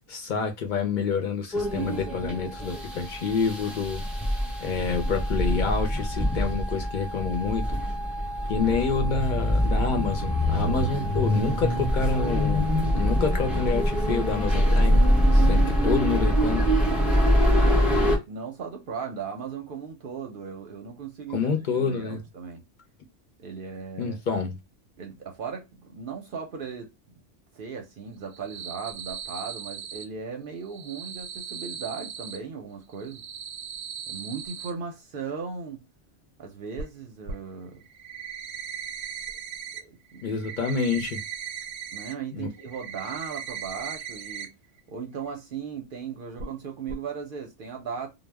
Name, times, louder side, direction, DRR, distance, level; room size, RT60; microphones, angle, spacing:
voice 1, 0.1-4.0 4.6-7.8 8.5-12.7 12.9-15.0 15.3-16.7 21.3-22.2 24.0-24.6 40.2-41.2 42.3-42.5, left 5 dB, 55° left, 0.5 m, -28 dB
sound 1, 1.5-18.2, equal, ahead, 0.5 m, -24 dB
voice 2, 1.8-2.4 17.4-18.0 18.3-22.6 23.4-24.2 25.0-26.9 27.6-33.2 34.1-35.8 36.4-37.8 39.7-40.4 41.9-44.5 44.9-48.1, right 6 dB, 60° right, 0.6 m, -37 dB
sound 2, 28.2-30.1 30.6-32.4 32.9-34.7 36.8-36.9 37.3-37.4 37.8-39.8 40.1-42.1 42.5-44.5 44.8-44.9 45.3-45.4 46.4-46.6 46.9-47.0, right 7 dB, 85° right, 0.9 m, -38 dB
2.0 x 2.0 x 3.2 m
omnidirectional pair, 1.2 m